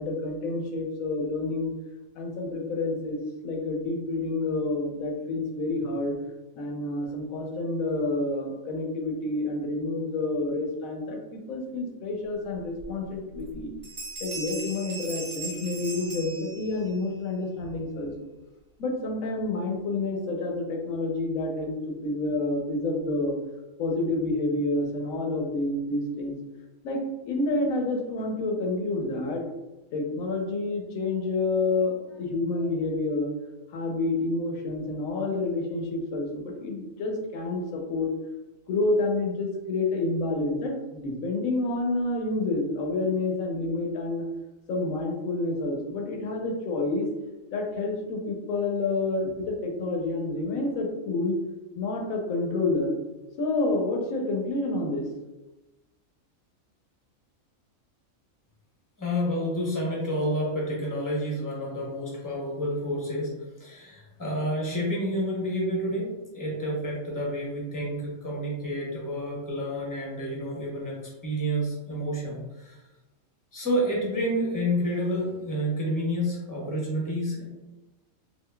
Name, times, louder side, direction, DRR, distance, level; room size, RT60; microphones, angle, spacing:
voice 1, 0.0-1.7 2.2-6.2 6.6-13.7 14.2-18.1 18.8-23.3 23.8-26.4 26.8-29.4 29.9-33.3 33.7-38.1 38.7-44.2 44.7-47.1 47.5-51.4 51.8-53.0 53.4-55.1, left 2 dB, 80° left, 2 dB, 1.1 m, -29 dB
sound 1, 12.8-12.9 13.3-13.6 13.8-17.0, right 2 dB, 15° right, 1.1 m, -38 dB
voice 2, 59.0-63.3 63.6-72.8 73.5-77.4, equal, 15° left, -4 dB, 0.7 m, -29 dB
3.7 x 2.7 x 2.2 m, 1.1 s
omnidirectional pair, 1.4 m